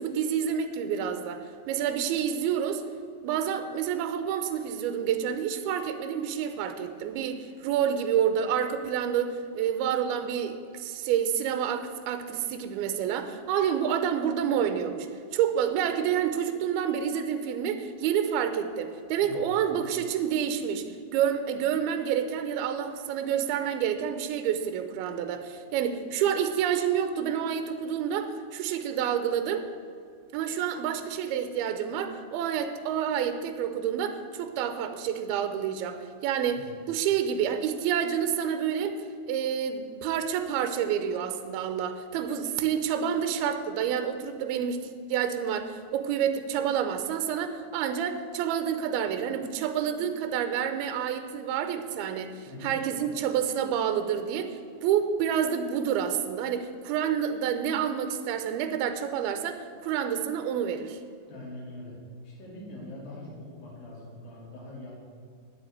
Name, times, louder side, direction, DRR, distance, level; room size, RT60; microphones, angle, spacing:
voice 1, 0.0-2.8 3.2-29.7 30.3-39.0 39.3-61.0, right 8 dB, 85° right, 9 dB, 2.6 m, -28 dB
voice 2, 19.2-19.6 36.5-36.7 52.5-52.7 61.2-62.0 62.2-64.9, left 2 dB, 65° left, -5 dB, 4.4 m, -43 dB
9.3 x 8.0 x 8.7 m, 2.2 s
omnidirectional pair, 4.4 m